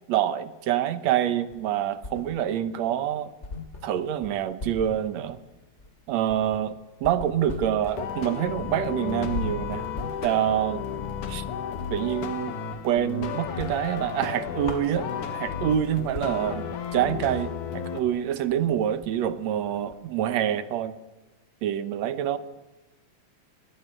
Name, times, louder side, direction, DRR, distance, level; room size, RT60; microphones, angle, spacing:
voice 1, 0.1-3.3 3.8-5.4 6.1-6.8 7.0-9.8 10.2-10.8 11.3-11.4 11.9-12.6 12.8-21.0 21.6-22.4, right 10 dB, 65° right, 12 dB, 2.0 m, -26 dB
sound 1, 1.5-2.7 3.0-3.1 3.4-12.0 12.4-13.2 13.4-15.4 15.9-16.0 16.1-20.3, left 3 dB, 20° left, 2.7 m, -41 dB
sound 2, 7.8-18.0, left 7 dB, 65° left, 3.1 m, -33 dB
21.5 x 18.5 x 8.9 m, 1.1 s
omnidirectional pair, 3.9 m